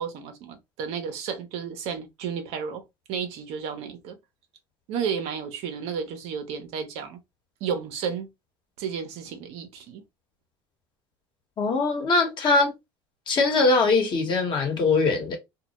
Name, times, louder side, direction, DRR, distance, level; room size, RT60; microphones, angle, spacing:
voice 1, 0.0-2.8 3.1-4.2 4.9-7.2 7.6-8.3 8.8-10.0, right 7 dB, 65° right, 0.7 m, -32 dB
voice 2, 11.6-12.7 13.3-15.4, left 3 dB, 40° left, 1.1 m, -22 dB
2.2 x 2.0 x 2.9 m
hypercardioid pair, 85°, 12 cm